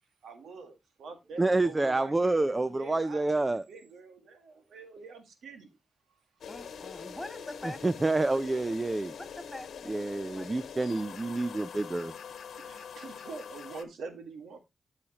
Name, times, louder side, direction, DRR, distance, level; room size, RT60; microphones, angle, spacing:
voice 1, 0.2-5.8 6.1-6.2 11.4-11.5 12.6-14.6, right 4 dB, 80° right, 1.8 m, -45 dB
voice 2, 1.4-3.6 7.8-9.1 9.9-12.1, right 2 dB, 30° right, 0.5 m, -28 dB
sound 1, 6.4-13.8, left 7 dB, 80° left, 1.1 m, -44 dB
voice 3, 6.5-8.0 8.3-8.4 9.2-11.1, left 1 dB, 15° left, 2.6 m, -45 dB
13.5 x 5.0 x 2.9 m
cardioid pair, 50°, 0 cm